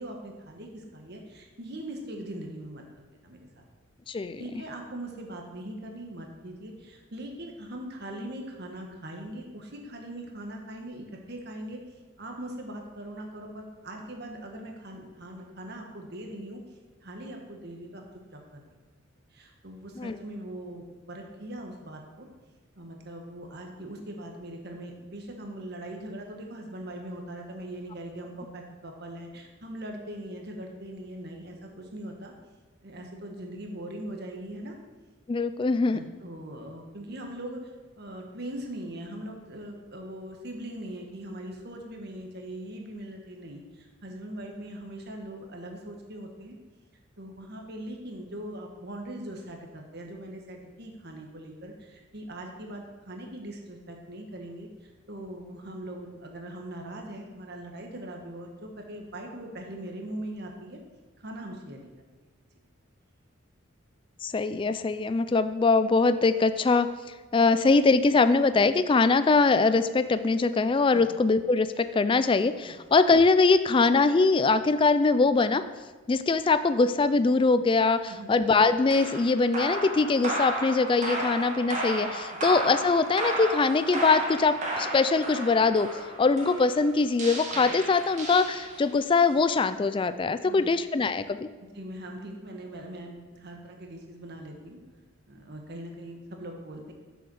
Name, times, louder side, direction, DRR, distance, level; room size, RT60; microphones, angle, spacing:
voice 1, 0.0-2.8 3.2-3.6 4.3-11.8 12.2-16.6 17.0-18.0 18.3-18.6 19.3-22.3 22.7-32.3 32.8-34.7 35.9-37.7 38.0-46.6 47.2-54.7 55.1-60.8 61.2-61.9 70.9-71.1 72.7-72.8 78.1-78.3 82.3-82.4 90.4-90.7 91.7-94.8 95.3-96.9, right 1 dB, 55° right, 2 dB, 1.5 m, -41 dB
voice 2, 4.1-4.4 20.0-20.2 35.3-36.0 64.2-66.9 67.3-75.6 76.1-91.5, left 4 dB, 25° left, 12 dB, 0.3 m, -23 dB
sound 1, 78.9-89.0, right 1 dB, 35° right, 1.9 m, -33 dB
7.3 x 7.0 x 6.3 m, 1.3 s
head